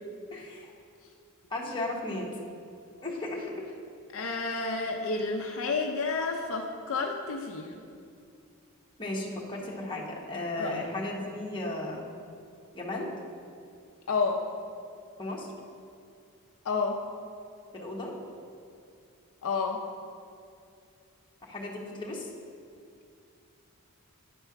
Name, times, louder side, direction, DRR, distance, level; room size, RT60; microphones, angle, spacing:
voice 1, 0.3-0.7 1.5-2.3 3.0-3.7 9.0-12.0 12.7-13.1 15.2-15.5 17.7-18.1 21.4-22.3, left 2 dB, 20° left, -3 dB, 1.3 m, -35 dB
voice 2, 4.1-7.8 10.6-10.8 14.1-14.4 16.6-17.0 19.4-19.8, left 4 dB, 65° left, 2 dB, 0.6 m, -30 dB
10.0 x 4.4 x 5.8 m, 2.5 s
head